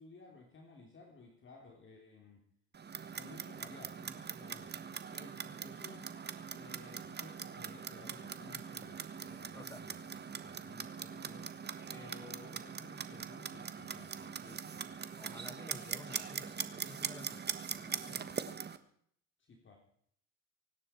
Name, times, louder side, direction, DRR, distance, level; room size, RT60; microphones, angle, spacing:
voice 1, 0.0-2.4 3.1-6.1 6.5-15.2 19.4-19.8, left 3 dB, 35° left, 3.5 m, -56 dB
Clock, 2.7-18.8, right 6 dB, 30° right, 1.4 m, -42 dB
voice 2, 15.2-18.6, left 2 dB, 10° left, 1.1 m, -53 dB
24.5 x 11.5 x 4.5 m
supercardioid pair, 100°, 34 cm